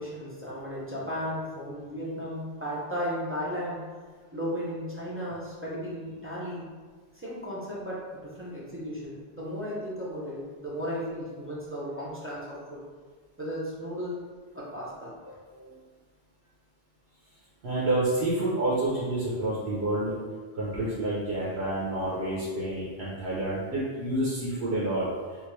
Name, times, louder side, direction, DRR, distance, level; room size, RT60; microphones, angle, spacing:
voice 1, 0.0-3.8 4.3-6.7 7.2-12.8 13.4-14.2 14.5-15.1, equal, 15° right, -7 dB, 0.6 m, -35 dB
voice 2, 15.5-15.8 17.6-20.1 20.5-25.1, right 1 dB, 75° right, -7 dB, 1.0 m, -29 dB
3.6 x 2.5 x 3.1 m, 1.5 s
omnidirectional pair, 1.1 m